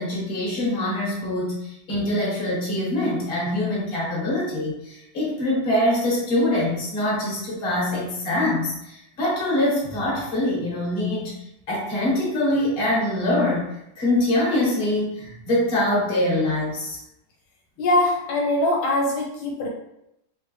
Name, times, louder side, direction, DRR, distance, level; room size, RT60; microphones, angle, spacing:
voice 1, 0.0-11.4 11.7-17.0, left 1 dB, 35° left, -6 dB, 1.3 m, -24 dB
voice 2, 17.8-19.7, left 1 dB, 80° left, -2 dB, 1.5 m, -22 dB
3.6 x 3.3 x 3.2 m, 0.82 s
omnidirectional pair, 2.2 m